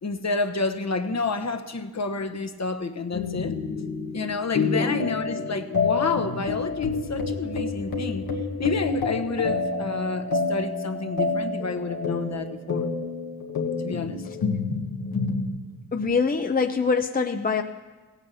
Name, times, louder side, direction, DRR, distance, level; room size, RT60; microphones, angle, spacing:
voice 1, 0.0-3.6 4.1-8.3 8.6-12.9 13.8-14.3, left 3 dB, 45° left, 8 dB, 1.2 m, -29 dB
sound 1, 3.1-15.5, left 4 dB, 75° left, 1.8 m, -28 dB
voice 2, 15.9-17.6, left 5 dB, 25° left, 6 dB, 0.7 m, -24 dB
17.0 x 8.9 x 7.0 m, 1.3 s
cardioid pair, 45°, 36 cm